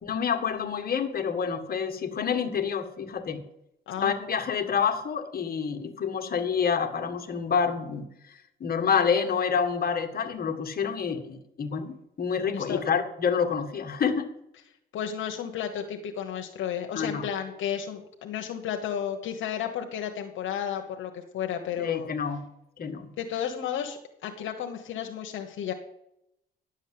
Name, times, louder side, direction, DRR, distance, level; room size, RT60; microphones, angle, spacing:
voice 1, 0.0-3.4 4.0-14.3 17.0-17.2 21.8-22.4 22.8-23.1, left 6 dB, 50° left, 6 dB, 1.8 m, -28 dB
voice 2, 14.9-22.1 23.2-25.7, left 9 dB, 80° left, 3 dB, 1.2 m, -33 dB
11.0 x 7.3 x 7.8 m, 0.81 s
cardioid pair, 90°, 20 cm